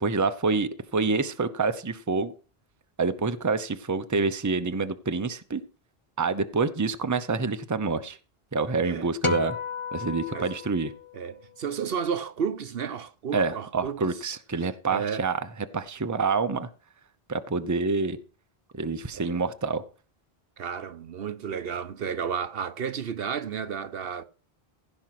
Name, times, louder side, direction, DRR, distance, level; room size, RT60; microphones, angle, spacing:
voice 1, 0.0-2.3 3.0-5.6 6.2-8.2 8.5-9.6 9.9-10.9 13.3-15.4 15.7-16.7 17.3-18.2 18.7-19.8, right 4 dB, 20° right, 0.7 m, -27 dB
sound 1, 9.2-11.7, left 6 dB, 30° left, 0.8 m, -34 dB
voice 2, 11.1-14.2 14.9-15.3 19.1-19.4 20.6-24.2, right 7 dB, 70° right, 1.0 m, -32 dB
16.0 x 5.5 x 6.0 m
omnidirectional pair, 1.1 m